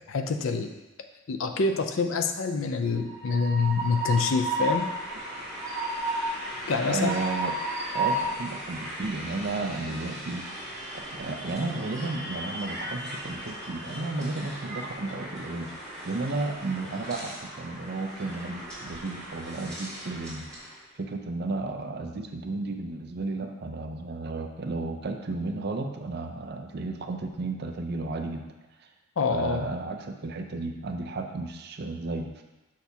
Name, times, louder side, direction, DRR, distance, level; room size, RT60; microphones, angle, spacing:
voice 1, 0.1-0.7 1.3-4.9 6.7-7.1 29.2-29.7, left 4 dB, 65° left, 6 dB, 0.5 m, -26 dB
Train, 2.9-20.7, right 1 dB, 5° left, 2.1 m, -35 dB
voice 2, 6.9-7.5 7.9-10.4 10.9-15.7 16.0-20.5 21.0-28.5 29.3-32.3, right 3 dB, 50° right, 4 dB, 0.5 m, -33 dB
6.2 x 5.7 x 2.8 m, 1.0 s
head